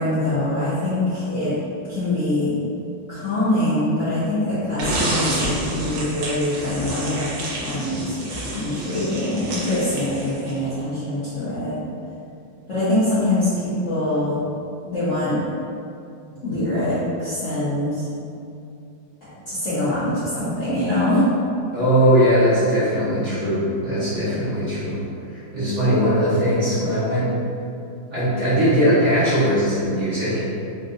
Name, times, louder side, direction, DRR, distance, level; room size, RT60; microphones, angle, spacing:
voice 1, 0.0-1.5 1.9-2.5 3.1-8.2 8.5-11.8 12.7-14.4 14.8-15.4 16.4-18.0 19.2-21.2, left 1 dB, 55° left, -13 dB, 0.9 m, -24 dB
sound 1, 4.8-10.7, right 1 dB, 70° right, 1.3 m, -28 dB
voice 2, 21.7-25.0 25.3-27.3 28.1-30.5, equal, 45° right, -13 dB, 1.1 m, -20 dB
3.9 x 2.4 x 2.5 m, 2.5 s
omnidirectional pair, 2.1 m